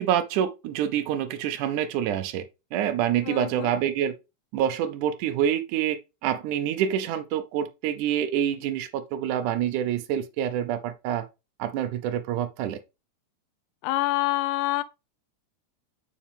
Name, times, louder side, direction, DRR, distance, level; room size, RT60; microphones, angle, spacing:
voice 1, 0.0-2.4 2.7-4.1 4.5-11.3 11.6-12.8, right 10 dB, 80° right, 1.8 m, -27 dB
voice 2, 3.2-3.7 13.8-14.8, left 17 dB, 90° left, 1.8 m, -26 dB
7.3 x 5.8 x 3.5 m
omnidirectional pair, 4.5 m